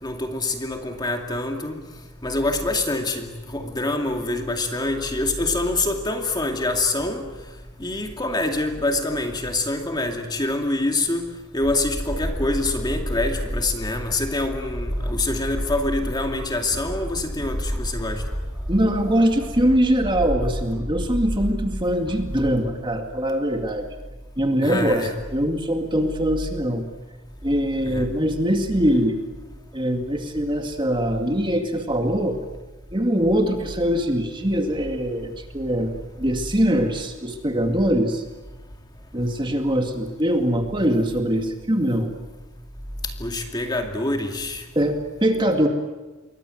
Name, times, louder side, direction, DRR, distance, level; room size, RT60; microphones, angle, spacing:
voice 1, 0.0-1.8 2.2-7.3 7.8-11.2 11.5-18.2 24.6-25.1 27.9-28.1 43.2-44.6, left 2 dB, 20° left, 4 dB, 2.4 m, -25 dB
sound 1, 11.6-22.6, equal, 5° right, 4.0 m, -30 dB
voice 2, 18.7-23.9 24.4-26.8 27.4-29.2 29.7-32.4 32.9-38.2 39.1-42.1 44.8-45.7, equal, 20° right, 4 dB, 2.2 m, -22 dB
28.0 x 23.5 x 7.9 m, 1.2 s
head